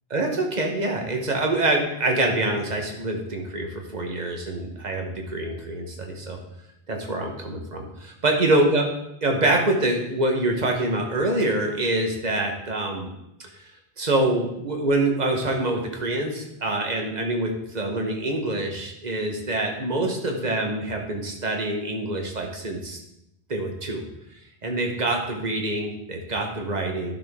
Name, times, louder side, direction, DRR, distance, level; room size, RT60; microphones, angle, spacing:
voice 1, 0.1-6.4 6.9-8.9 9.2-13.1 14.0-23.0 23.5-24.0 24.6-27.2, right 2 dB, 45° right, 2 dB, 1.4 m, -25 dB
11.5 x 6.2 x 3.7 m, 0.85 s
omnidirectional pair, 1.0 m